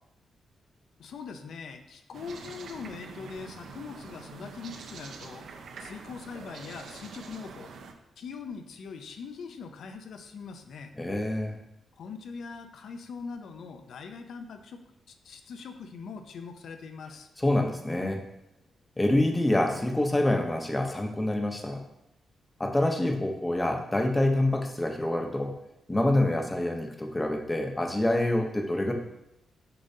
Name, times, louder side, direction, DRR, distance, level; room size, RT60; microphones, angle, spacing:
voice 1, 1.0-5.5 5.8-7.7 8.2-10.9 12.0-14.8 15.1-17.3, left 5 dB, 70° left, 6 dB, 0.6 m, -42 dB
sound 1, 2.1-7.9, right 5 dB, 70° right, 0.6 m, -45 dB
voice 2, 11.0-11.6 17.4-18.2 19.0-21.8 22.6-25.6 25.9-28.9, left 1 dB, 15° left, 3 dB, 0.8 m, -26 dB
6.8 x 5.2 x 2.7 m, 0.85 s
cardioid pair, 120°, 0 cm